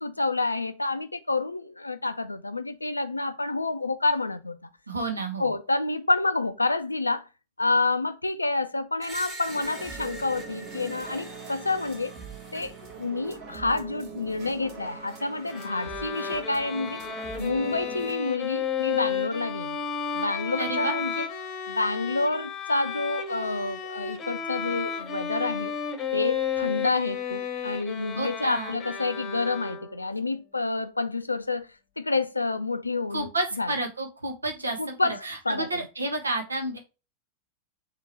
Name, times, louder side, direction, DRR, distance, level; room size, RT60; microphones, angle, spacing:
voice 1, 0.0-4.6 5.4-7.3 7.6-12.1 12.5-12.7 13.0-17.0 17.4-19.8 20.1-21.3 21.7-25.7 26.1-31.7 32.0-33.3 33.6-33.7 34.8-35.9, left 3 dB, 80° left, 0.4 m, -28 dB
voice 2, 4.9-5.5 20.6-20.9 28.1-28.8 33.1-34.9 35.2-36.8, right 2 dB, 80° right, 0.8 m, -30 dB
Screech, 9.0-13.0, right 2 dB, 20° right, 1.7 m, -43 dB
sound 1, 9.5-18.1, right 5 dB, 45° right, 1.4 m, -42 dB
Bowed string instrument, 15.5-30.1, left 7 dB, 30° left, 0.9 m, -32 dB
3.7 x 2.9 x 4.4 m
figure-of-eight pair, 90°, 0 cm